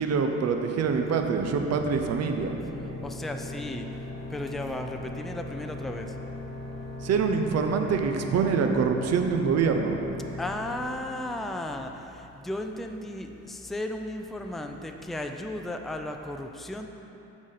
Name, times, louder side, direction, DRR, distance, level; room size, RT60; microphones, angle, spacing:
voice 1, 0.0-2.6 7.0-10.0, right 5 dB, 55° right, 5 dB, 0.7 m, -25 dB
sound 1, 0.9-12.3, left 1 dB, 30° left, 1.5 m, -39 dB
voice 2, 3.0-3.9 4.3-6.1 10.4-16.9, left 1 dB, ahead, 4 dB, 0.4 m, -35 dB
7.1 x 4.1 x 6.6 m, 3.0 s
cardioid pair, 90°, 30 cm